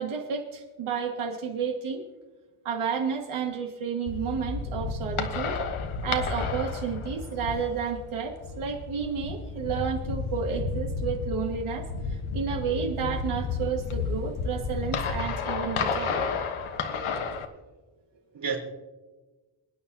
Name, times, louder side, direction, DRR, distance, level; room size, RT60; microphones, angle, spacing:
voice 1, 0.0-2.0 2.6-5.6 6.0-16.3, right 6 dB, 85° right, 0 dB, 2.6 m, -31 dB
sound 1, 4.1-17.5, left 4 dB, 80° left, 1.3 m, -32 dB
voice 2, 16.9-17.6 18.3-18.6, right 5 dB, 60° right, -3 dB, 4.2 m, -35 dB
27.5 x 9.6 x 2.9 m, 1.2 s
wide cardioid pair, 140°, 48 cm